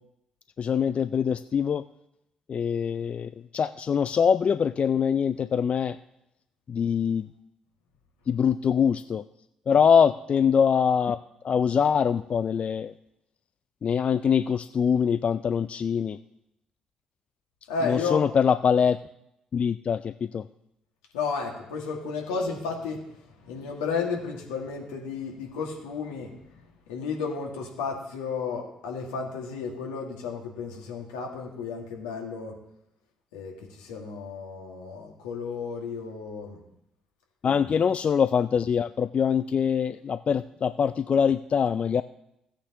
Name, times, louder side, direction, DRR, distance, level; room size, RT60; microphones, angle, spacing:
voice 1, 0.6-1.8 2.5-6.0 6.7-7.3 8.3-9.2 9.7-11.2 11.4-12.9 13.8-16.2 17.8-19.0 19.5-20.5 37.4-42.0, left 7 dB, 50° left, 13 dB, 0.4 m, -23 dB
voice 2, 17.7-18.2 21.1-23.1 23.4-26.5 26.9-32.6 33.3-36.6, left 5 dB, 85° left, 1 dB, 1.9 m, -33 dB
16.0 x 8.5 x 2.9 m, 0.82 s
hypercardioid pair, 45°, 3 cm